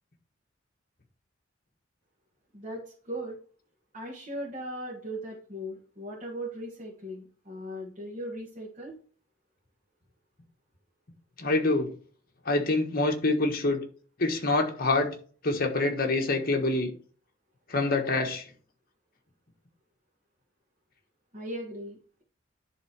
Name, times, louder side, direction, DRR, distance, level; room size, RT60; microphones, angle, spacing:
voice 1, 2.5-3.4 3.9-9.0 21.3-22.2, right 1 dB, 35° right, -3 dB, 1.7 m, -38 dB
voice 2, 11.4-11.9 12.4-13.8 14.2-15.1 15.4-16.9 17.7-18.5, left 2 dB, 45° left, 3 dB, 1.4 m, -26 dB
10.5 x 3.6 x 4.7 m, 0.43 s
head